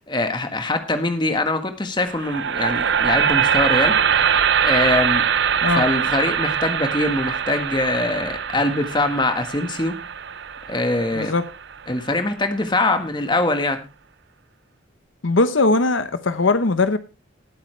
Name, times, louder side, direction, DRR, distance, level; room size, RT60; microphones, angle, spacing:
voice 1, 0.1-3.9 4.6-5.2 5.7-9.9 10.7-11.3 11.9-13.8, left 2 dB, 25° left, 1.6 m, -23 dB
sound 1, 2.1-12.2, right 7 dB, 60° right, 0.5 m, -22 dB
voice 2, 11.1-11.5 15.2-17.0, left 3 dB, 75° left, 1.0 m, -19 dB
19.5 x 8.4 x 3.3 m
head